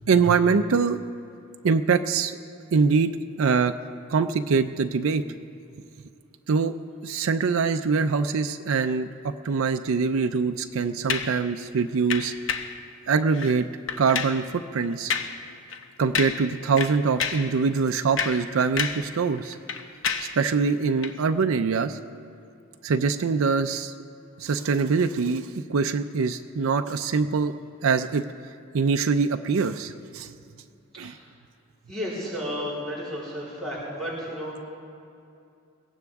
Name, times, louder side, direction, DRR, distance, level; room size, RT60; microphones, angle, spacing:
voice 1, 0.1-1.0 1.6-2.4 2.7-3.7 4.1-5.2 6.5-6.7 7.0-12.3 13.1-13.7 14.0-15.1 16.0-19.6 20.2-22.0 22.8-23.9 24.4-27.5 27.8-28.2 28.7-30.3 31.0-31.1, right 5 dB, 90° right, 7 dB, 0.5 m, -24 dB
sound 1, 11.1-11.4 12.1-12.8 13.3-13.6 13.9-14.4 15.1-15.4 15.7-15.8 16.2-16.5 16.8-17.5 18.0-19.1 19.4-20.4 21.0-21.2, left 6 dB, 70° left, 0.8 m, -29 dB
voice 2, 31.9-34.6, equal, ahead, -11 dB, 3.8 m, -33 dB
22.0 x 16.5 x 3.6 m, 2.6 s
head